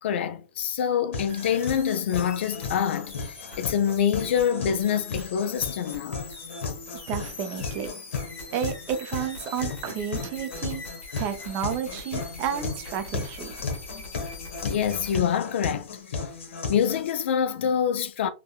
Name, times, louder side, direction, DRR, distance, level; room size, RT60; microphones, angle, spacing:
voice 1, 0.0-6.2 14.6-16.0 16.7-18.3, left 8 dB, 65° left, 0.4 m, -26 dB
sound 1, 1.1-17.1, left 4 dB, 80° left, 0.9 m, -35 dB
sound 2, 1.3-15.2, left 3 dB, 30° left, 1.3 m, -43 dB
voice 2, 7.1-7.9 8.5-10.8 11.2-13.5, right 8 dB, 30° right, 0.4 m, -31 dB
3.5 x 2.1 x 2.3 m
hypercardioid pair, 150°, 7 cm